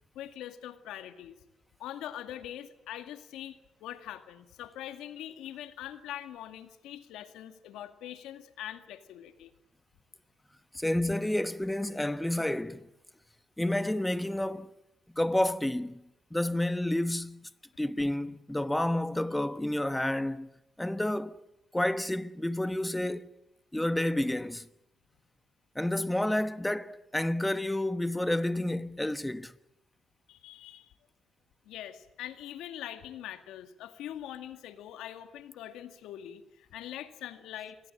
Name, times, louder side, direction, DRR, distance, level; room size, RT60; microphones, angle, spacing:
voice 1, 0.1-1.3 1.8-9.5 30.3-30.9 31.6-37.8, left 11 dB, 90° left, 2.0 m, -43 dB
voice 2, 10.7-12.9 13.6-14.7 15.1-16.0 16.3-17.5 17.8-20.5 20.8-21.4 21.7-23.3 23.7-24.7 25.7-29.5, left 1 dB, 5° left, 1.2 m, -30 dB
27.5 x 20.5 x 8.9 m
cardioid pair, 90°, 0 cm